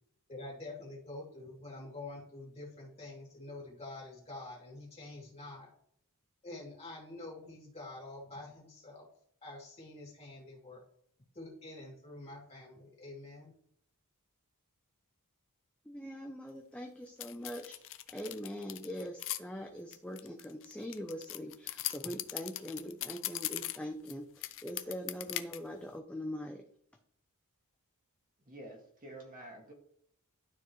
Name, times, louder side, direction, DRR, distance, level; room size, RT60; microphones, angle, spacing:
voice 1, 0.3-5.7 6.4-9.1 9.4-10.8 11.3-13.5, left 2 dB, 30° left, -3 dB, 2.8 m, -47 dB
voice 2, 15.9-17.8 18.1-26.6, equal, 5° left, 3 dB, 0.6 m, -42 dB
sound 1, 17.2-19.4 19.9-24.1 24.4-25.6, left 14 dB, 60° left, 0.5 m, -39 dB
voice 3, 28.5-29.7, right 1 dB, 40° right, -1 dB, 2.0 m, -49 dB
12.0 x 4.4 x 3.1 m, 0.67 s
head